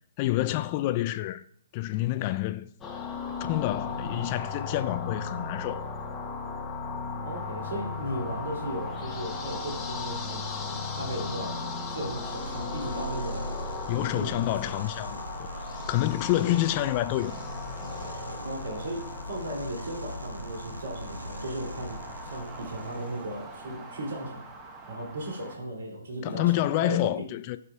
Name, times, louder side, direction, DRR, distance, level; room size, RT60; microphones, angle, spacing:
voice 1, 0.2-1.4 1.7-2.7 3.4-5.9 13.9-15.5 15.9-17.4 26.2-27.6, left 15 dB, 35° left, 0.4 m, -28 dB
sound 1, 2.8-22.6, left 4 dB, 15° left, 1.0 m, -37 dB
sound 2, 7.2-25.6, right 2 dB, 20° right, 1.2 m, -47 dB
voice 2, 7.2-13.5 14.0-14.4 18.4-24.4 24.9-27.0, right 1 dB, 65° right, 2.7 m, -36 dB
sound 3, 11.9-23.3, equal, 85° right, 1.1 m, -41 dB
14.5 x 6.6 x 2.3 m
figure-of-eight pair, 130°, 0 cm